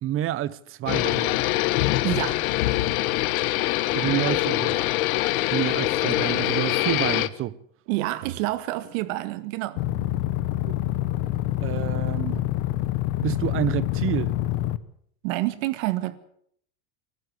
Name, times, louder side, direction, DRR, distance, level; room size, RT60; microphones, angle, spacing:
voice 1, 0.0-1.4 3.9-4.9 5.5-7.6 10.7-10.8 11.6-12.4 13.2-14.3, right 13 dB, 30° right, 0.9 m, -28 dB
sound 1, 0.9-7.3, left 17 dB, 70° left, 1.3 m, -24 dB
voice 2, 2.0-2.4 7.9-9.8 15.2-16.2, right 17 dB, 55° right, 2.0 m, -28 dB
sound 2, 9.8-14.8, left 14 dB, 45° left, 1.2 m, -26 dB
28.0 x 12.5 x 8.2 m
supercardioid pair, 150°, 44 cm